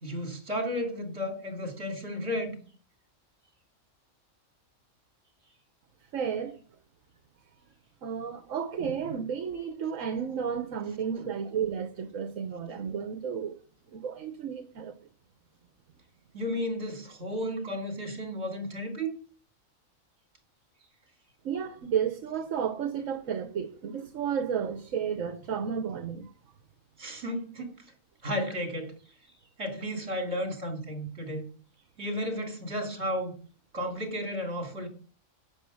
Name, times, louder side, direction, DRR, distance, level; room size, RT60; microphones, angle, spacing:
voice 1, 0.0-2.6 11.2-11.3 16.3-19.1 27.0-27.8 28.2-29.0 29.6-31.4 32.0-33.4 33.7-34.9, equal, 55° right, 3.5 m, -33 dB
voice 2, 6.1-6.6 8.0-13.6 13.9-14.9 21.4-26.3, right 7 dB, 70° right, 1.4 m, -32 dB
11.5 x 9.3 x 6.4 m
omnidirectional pair, 1.4 m